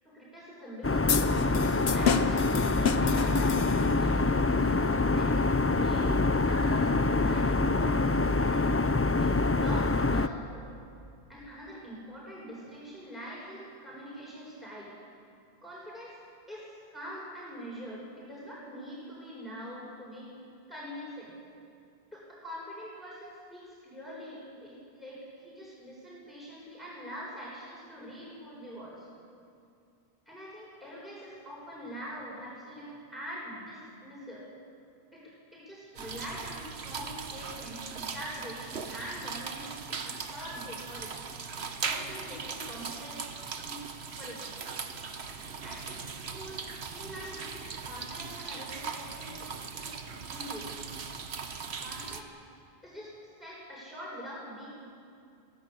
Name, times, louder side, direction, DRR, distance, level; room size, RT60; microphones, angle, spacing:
voice 1, 0.0-1.1 1.5-8.0 8.4-8.7 9.2-10.7 11.3-14.9 15.6-16.2 16.5-20.3 20.7-21.3 22.1-29.1 30.3-34.4 35.1-41.2 41.8-43.2 43.6-43.9 44.2-44.6 45.6-50.0 50.3-50.8 51.8-52.3 52.8-54.7, equal, ahead, -6 dB, 7.3 m, -44 dB
sound 1, 0.8-10.3, left 3 dB, 25° left, 0.3 m, -25 dB
sound 2, 1.1-4.1, left 6 dB, 75° left, 1.2 m, -31 dB
sound 3, 36.0-52.2, right 5 dB, 85° right, 1.4 m, -39 dB
24.0 x 17.0 x 8.4 m, 2.5 s
omnidirectional pair, 1.1 m